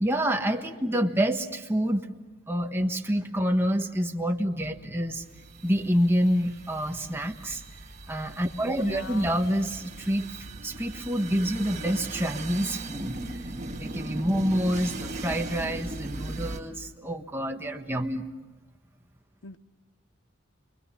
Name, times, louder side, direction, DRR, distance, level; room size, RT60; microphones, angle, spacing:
voice 1, 0.0-2.1 2.5-5.2 5.6-7.6 8.1-10.3 10.6-13.4 13.8-18.3, equal, 10° right, 3 dB, 1.4 m, -27 dB
sound 1, 4.6-16.6, right 2 dB, 35° right, 2.0 m, -39 dB
voice 2, 8.7-9.4 14.6-14.7 19.4-19.6, left 3 dB, 70° left, 12 dB, 0.9 m, -42 dB
29.0 x 24.0 x 5.7 m, 1.2 s
head